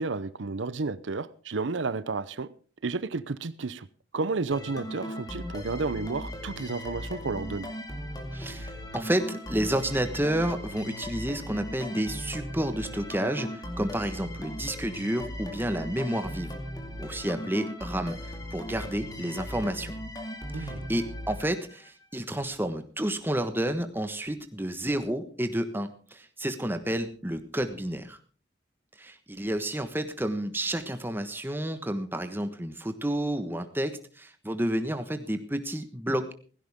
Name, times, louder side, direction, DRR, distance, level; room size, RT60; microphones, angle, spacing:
voice 1, 0.0-2.5 2.8-3.9 4.1-7.7 20.5-20.9, right 3 dB, 90° right, 0.7 m, -31 dB
sound 1, 4.5-22.0, left 1 dB, 20° left, 2.4 m, -38 dB
voice 2, 8.3-13.5 13.8-16.6 17.0-18.2 18.5-19.9 20.5-28.2 29.0-36.3, right 1 dB, 10° right, 1.3 m, -30 dB
17.0 x 15.5 x 3.6 m
head